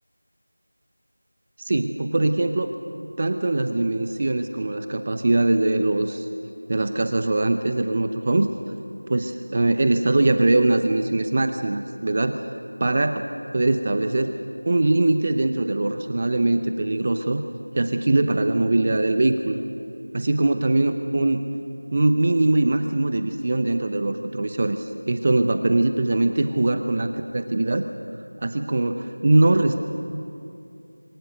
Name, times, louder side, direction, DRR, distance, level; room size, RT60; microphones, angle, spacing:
voice 1, 1.6-2.7 3.2-6.3 6.7-8.5 9.1-12.4 12.8-13.2 13.5-14.3 14.7-17.4 17.7-19.6 20.1-21.5 21.9-27.8 28.4-29.8, right 2 dB, 25° right, 7 dB, 0.7 m, -22 dB
27.0 x 22.5 x 6.6 m, 2.6 s
figure-of-eight pair, 175°, 0 cm